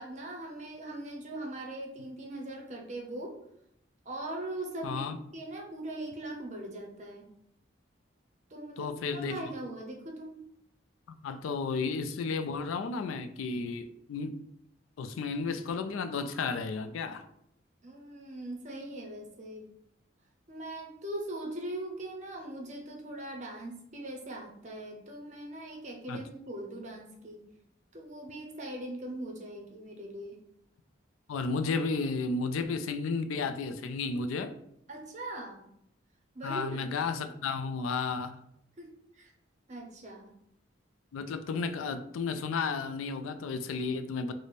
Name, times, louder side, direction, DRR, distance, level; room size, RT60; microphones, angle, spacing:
voice 1, 0.0-3.4 4.1-5.1 5.3-7.3 8.5-10.4 17.8-19.7 20.5-27.4 27.9-30.4 34.9-35.7 36.3-36.8 38.8-39.3 39.7-40.3, right 1 dB, 35° right, 0.6 m, -40 dB
voice 2, 4.8-5.2 8.8-9.4 11.1-14.4 15.0-17.3 26.1-26.2 31.3-34.6 36.4-38.4 41.1-44.3, left 4 dB, 90° left, 0.3 m, -33 dB
3.2 x 2.0 x 4.1 m
head